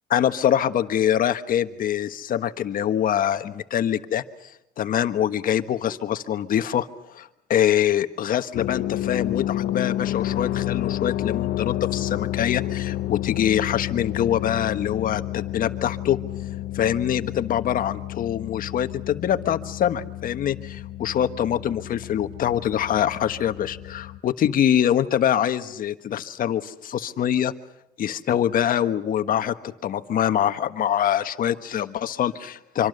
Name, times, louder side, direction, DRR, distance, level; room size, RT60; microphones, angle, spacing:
voice 1, 0.1-4.2 4.8-6.9 7.1-16.2 16.7-27.5 28.0-32.9, left 10 dB, 55° left, 10 dB, 1.5 m, -24 dB
sound 1, 8.5-24.2, left 13 dB, 80° left, 1.0 m, -30 dB
25.5 x 25.5 x 6.7 m, 0.84 s
cardioid pair, 110°, 17 cm